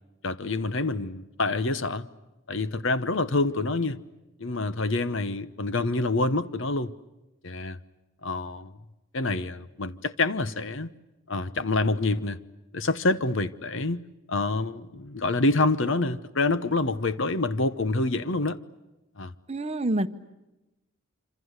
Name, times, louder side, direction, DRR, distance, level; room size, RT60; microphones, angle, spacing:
voice 1, 0.2-2.1 2.5-4.0 4.4-6.9 7.4-7.8 8.2-8.7 9.1-10.9 11.3-12.4 12.7-18.6 19.2-19.3, left 2 dB, 60° left, 1.0 m, -27 dB
voice 2, 19.5-20.1, right 1 dB, 30° right, 0.9 m, -26 dB
27.0 x 26.0 x 8.1 m
head